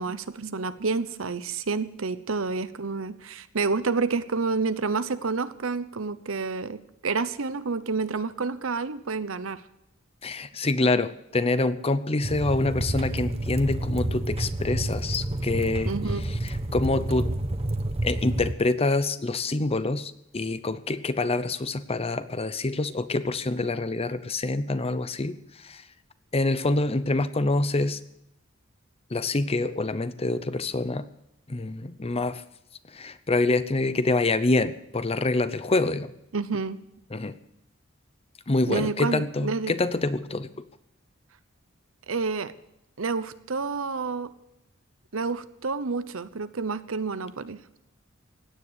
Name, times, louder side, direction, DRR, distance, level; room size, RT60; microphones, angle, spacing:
voice 1, 0.0-9.6 15.8-16.2 36.3-36.8 38.7-39.7 42.1-42.5 43.0-44.3 45.1-47.8, right 4 dB, 75° right, 13 dB, 0.9 m, -29 dB
voice 2, 10.2-15.9 16.7-17.3 18.0-25.4 25.6-25.8 26.3-28.0 29.1-31.1 31.5-32.4 32.9-36.1 37.1-37.4 38.5-40.5, left 2 dB, 30° left, 13 dB, 0.7 m, -26 dB
sound 1, 12.2-18.5, right 1 dB, 30° right, 1.1 m, -29 dB
16.5 x 9.8 x 8.2 m, 0.82 s
head